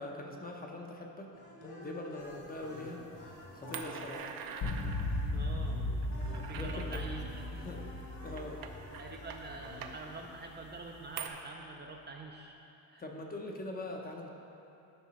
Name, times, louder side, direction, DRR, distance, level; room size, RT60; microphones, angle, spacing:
voice 1, 0.0-1.3 1.8-3.0 3.5-4.3 6.6-7.0 7.5-7.9 8.2-8.6 13.0-14.3, left 2 dB, 25° left, 1 dB, 0.8 m, -42 dB
sound 1, 1.3-10.5, left 1 dB, 50° left, 2.1 m, -50 dB
sound 2, 2.2-11.3, right 7 dB, 65° right, 0.7 m, -48 dB
sound 3, 4.6-10.0, left 1 dB, 75° left, 0.9 m, -37 dB
voice 2, 5.3-5.8 6.3-7.5 9.0-12.6 12.9-13.0, right 3 dB, 30° right, 1 dB, 0.5 m, -46 dB
11.5 x 5.9 x 4.1 m, 2.9 s
cardioid pair, 150°, 38 cm